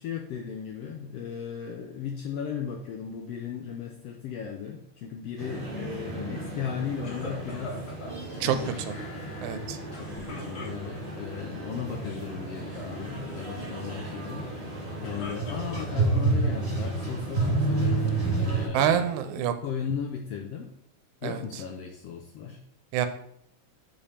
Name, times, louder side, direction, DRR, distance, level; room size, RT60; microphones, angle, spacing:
voice 1, 0.0-7.8 8.3-9.0 9.9-19.1 19.4-20.7 21.2-22.6, left 7 dB, 80° left, 2 dB, 1.4 m, -36 dB
sound 1, 5.4-18.7, right 2 dB, 30° right, 2.3 m, -31 dB
sound 2, 7.0-8.2 9.9-11.2 11.9-12.3 12.6-13.0 14.8-16.3 16.9-17.6, left 2 dB, 65° left, 0.9 m, -42 dB
sound 3, 8.2-10.5 10.8-10.9, left 3 dB, 35° left, 3.1 m, -50 dB
voice 2, 9.4-9.8 18.7-19.5 21.2-21.4 22.9-23.1, right 9 dB, 85° right, 9 dB, 2.0 m, -26 dB
5.2 x 5.0 x 4.2 m, 0.70 s
omnidirectional pair, 3.4 m